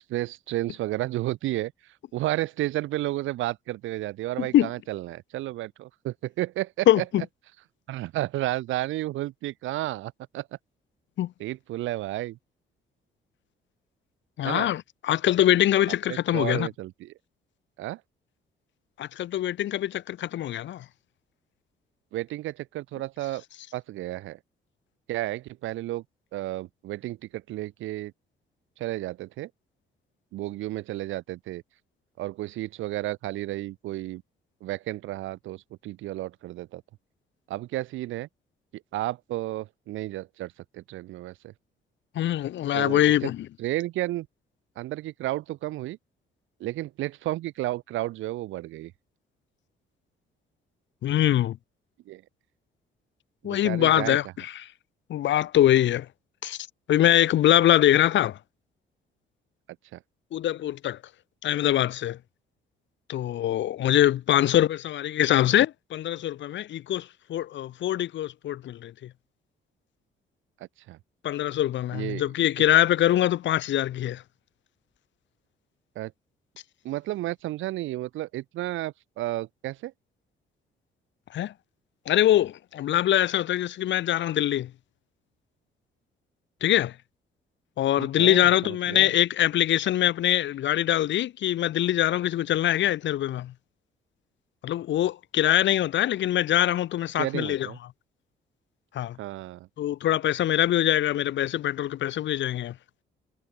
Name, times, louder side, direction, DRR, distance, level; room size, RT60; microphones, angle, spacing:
voice 1, 0.1-1.7 2.1-7.3 7.9-10.5 11.4-12.4 14.4-14.7 16.1-17.1 17.8-18.0 22.1-23.4 23.7-24.4 25.1-26.0 26.3-28.1 28.8-29.5 30.3-31.6 32.2-34.2 34.6-36.8 37.5-38.3 38.9-41.5 42.7-43.3 43.6-44.3 44.8-46.0 46.6-48.9 52.1-52.2 53.4-54.2 59.9-60.0 70.9-71.0 71.9-72.2 76.0-76.1 76.8-79.9 88.0-89.1 97.2-97.8 99.2-99.7, right 16 dB, 85° right, 0.8 m, -32 dB
voice 2, 4.4-4.7 6.9-7.2 11.2-11.3 14.4-16.7 19.0-20.8 42.1-43.5 51.0-51.6 53.4-54.6 55.1-56.1 56.4-56.6 56.9-58.4 60.3-61.0 61.4-62.2 63.1-68.9 71.2-74.2 81.3-81.5 82.1-84.7 86.6-86.9 87.8-93.5 94.6-97.7 98.9-99.2 99.8-102.7, left 12 dB, 65° left, 0.9 m, -23 dB
cardioid pair, 90°, 20 cm